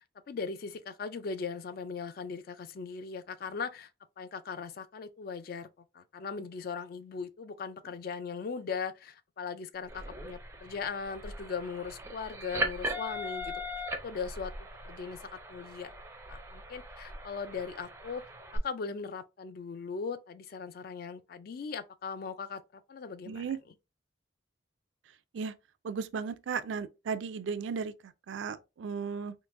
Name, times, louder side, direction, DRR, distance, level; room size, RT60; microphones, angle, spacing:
voice 1, 0.3-3.9 4.2-5.7 5.9-13.5 14.0-14.5 14.8-15.9 16.3-18.2 18.5-22.6 22.9-23.5, left 5 dB, 50° left, 0.3 m, -39 dB
sound 1, 9.9-18.6, equal, 15° right, 0.4 m, -39 dB
voice 2, 23.3-23.6 25.3-25.5 25.8-29.3, right 6 dB, 75° right, 0.4 m, -35 dB
3.7 x 2.4 x 2.5 m
head